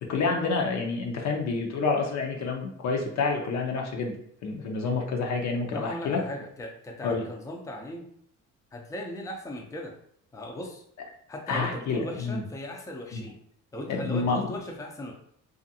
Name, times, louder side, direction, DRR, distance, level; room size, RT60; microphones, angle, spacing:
voice 1, 0.0-4.1 4.4-6.2 7.0-7.2 11.5-12.4 13.1-13.2 13.9-14.6, left 4 dB, 65° left, 1 dB, 0.7 m, -28 dB
voice 2, 5.7-8.1 8.7-9.9 10.3-10.8 11.3-13.4 13.7-15.1, left 1 dB, 10° left, 1 dB, 0.4 m, -37 dB
2.5 x 2.4 x 2.7 m, 0.67 s
cardioid pair, 90°, 30 cm